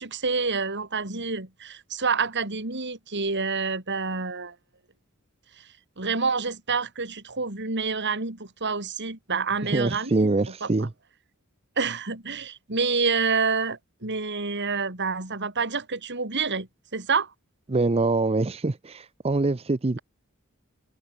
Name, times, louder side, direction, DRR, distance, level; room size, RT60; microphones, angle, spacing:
voice 1, 0.0-4.5 5.6-5.7 6.0-10.3 10.6-10.7 11.8-17.3, right 4 dB, 55° right, 4.7 m, -28 dB
voice 2, 9.6-10.9 17.7-20.0, right 3 dB, 30° right, 0.6 m, -24 dB
head